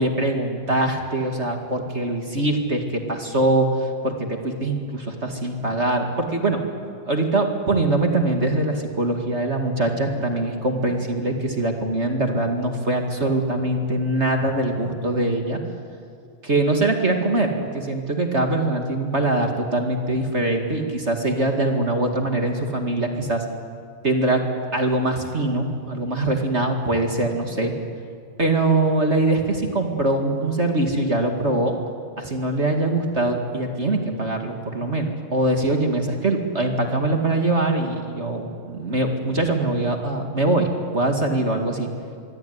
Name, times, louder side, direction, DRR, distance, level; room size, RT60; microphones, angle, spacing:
voice 1, 0.0-6.6 7.1-15.6 16.4-23.4 24.0-24.5 24.7-27.7 28.4-31.8 32.2-41.9, right 2 dB, 25° right, 3 dB, 1.5 m, -23 dB
25.5 x 22.5 x 9.6 m, 2.3 s
omnidirectional pair, 4.3 m